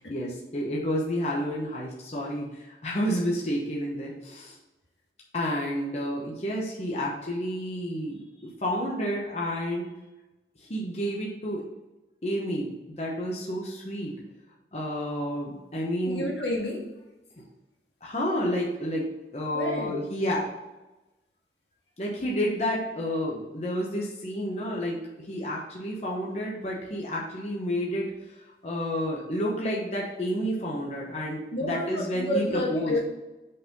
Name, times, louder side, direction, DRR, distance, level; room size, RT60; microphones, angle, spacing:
voice 1, 0.1-4.6 5.3-9.9 10.6-11.6 12.2-14.2 14.7-16.3 18.0-20.5 22.0-28.4 28.6-33.0, equal, 35° left, -3 dB, 1.0 m, -30 dB
voice 2, 16.0-16.9 19.5-19.9 31.5-33.0, left 1 dB, 80° left, -3 dB, 1.8 m, -29 dB
5.4 x 4.1 x 5.3 m, 1.0 s
head